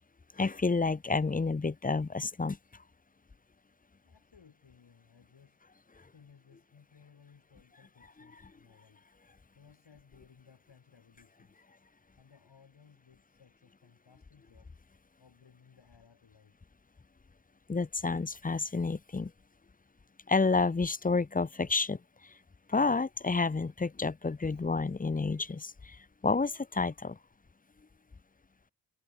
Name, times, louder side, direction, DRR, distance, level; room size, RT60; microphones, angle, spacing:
voice 1, 0.4-2.6 8.3-8.4 17.7-19.3 20.3-22.0 22.7-26.0 26.2-27.2, left 4 dB, 20° left, 0.6 m, -29 dB
voice 2, 4.0-5.6 6.1-9.0 9.5-11.6 12.2-14.7 15.2-16.5 24.5-24.7, left 6 dB, 80° left, 5.4 m, -61 dB
wide cardioid pair, 100°, 41 cm